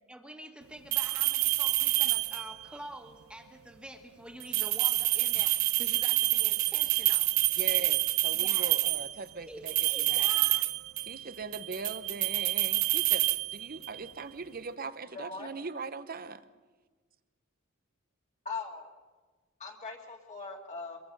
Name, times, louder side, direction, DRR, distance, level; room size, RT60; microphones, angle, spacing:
voice 1, 0.1-7.7 8.3-8.8 9.5-10.7, right 1 dB, 5° right, 4 dB, 1.8 m, -47 dB
sound 1, 0.9-2.7 4.4-9.1 9.7-11.2 11.5-14.0, right 16 dB, 90° right, 0.7 m, -27 dB
voice 2, 7.6-10.3 11.0-16.4, right 4 dB, 45° right, 13 dB, 0.9 m, -40 dB
voice 3, 15.1-15.5 18.4-18.9 19.6-21.0, left 4 dB, 35° left, 0 dB, 2.2 m, -40 dB
24.5 x 22.5 x 5.5 m, 1.4 s
head